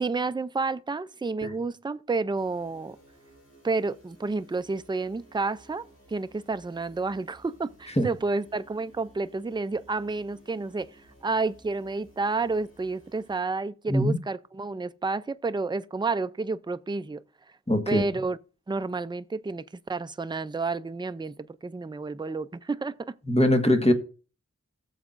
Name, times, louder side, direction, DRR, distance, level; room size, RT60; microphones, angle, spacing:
voice 1, 0.0-3.0 3.6-17.6 17.9-18.4 18.7-23.1, right 3 dB, 15° right, 0.4 m, -30 dB
sound 1, 2.3-13.4, right 1 dB, 45° left, 4.3 m, -57 dB
voice 2, 13.9-14.2 17.7-18.2 23.2-23.9, left 1 dB, 20° left, 1.4 m, -22 dB
14.0 x 7.1 x 2.5 m
wide cardioid pair, 40°, 31 cm